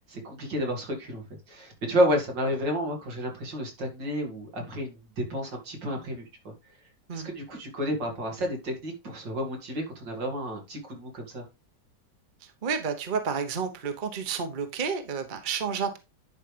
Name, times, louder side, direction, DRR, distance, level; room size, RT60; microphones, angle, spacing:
voice 1, 0.1-6.5 7.1-11.5, equal, 85° right, 3.2 m, -31 dB
voice 2, 12.4-16.0, right 6 dB, 35° right, 1.0 m, -31 dB
10.5 x 5.0 x 3.3 m
omnidirectional pair, 1.9 m